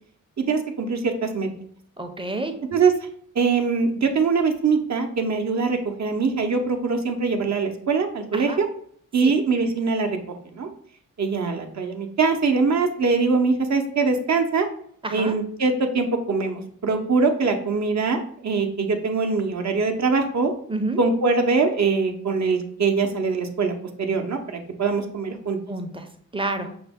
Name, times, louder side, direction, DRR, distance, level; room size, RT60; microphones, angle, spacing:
voice 1, 0.4-1.5 2.7-2.9 3.3-8.7 9.1-10.2 10.5-10.7 11.2-14.7 15.1-20.5 21.0-25.6, right 4 dB, 55° right, 4 dB, 0.8 m, -23 dB
voice 2, 2.0-2.7 8.3-8.6 9.2-9.3 15.0-15.4 20.7-21.0 25.7-26.8, right 2 dB, 15° right, 7 dB, 0.6 m, -29 dB
5.6 x 2.0 x 3.5 m, 0.62 s
cardioid pair, 55°, 33 cm